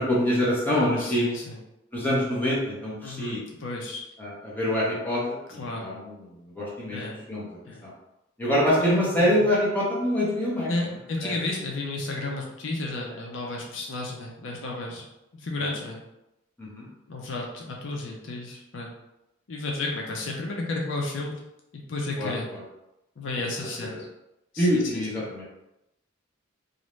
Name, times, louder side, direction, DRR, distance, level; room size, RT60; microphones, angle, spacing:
voice 1, 0.0-1.3 1.9-3.4 4.2-5.2 5.5-7.0 7.3-7.5 7.8-7.9 8.4-10.7 11.2-11.4 16.6-16.9 22.2-22.6 23.9-24.0 24.6-25.4, equal, 10° left, -7 dB, 0.7 m, -25 dB
voice 2, 1.0-1.6 3.0-4.0 5.6-5.9 6.9-7.2 7.7-7.8 8.8-9.4 10.7-15.0 15.3-16.0 17.1-18.9 19.5-21.3 21.7-22.5 23.2-24.1 24.5-24.8, left 2 dB, 70° left, -1 dB, 0.5 m, -32 dB
2.5 x 2.1 x 3.1 m, 0.90 s
head